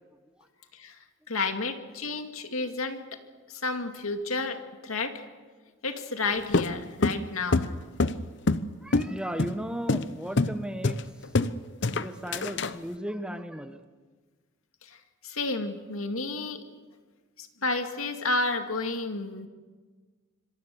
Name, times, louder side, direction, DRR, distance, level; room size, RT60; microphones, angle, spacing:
voice 1, 1.3-3.0 3.5-5.2 5.8-7.7 14.8-15.0 15.2-16.6 17.4-19.5, left 3 dB, 85° left, 6 dB, 2.2 m, -31 dB
sound 1, 6.5-8.7 8.9-9.1 9.4-9.6 9.9-10.1 10.4-10.6 10.8-11.5 11.8-12.7, left 3 dB, 55° left, 0.8 m, -25 dB
voice 2, 8.8-11.0 11.9-13.8, equal, 5° right, 8 dB, 1.0 m, -36 dB
26.0 x 23.0 x 7.0 m, 1.4 s
head